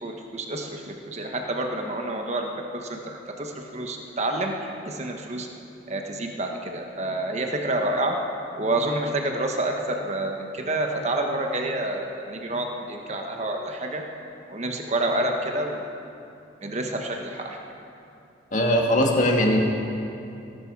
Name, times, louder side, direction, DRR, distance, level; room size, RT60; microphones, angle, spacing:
voice 1, 0.0-5.5 5.9-8.2 8.6-14.0 14.5-15.8 16.6-17.6, right 1 dB, 35° right, 2 dB, 1.2 m, -28 dB
voice 2, 18.5-19.6, left 1 dB, 40° left, 1 dB, 1.8 m, -20 dB
19.0 x 12.0 x 4.8 m, 2.7 s
head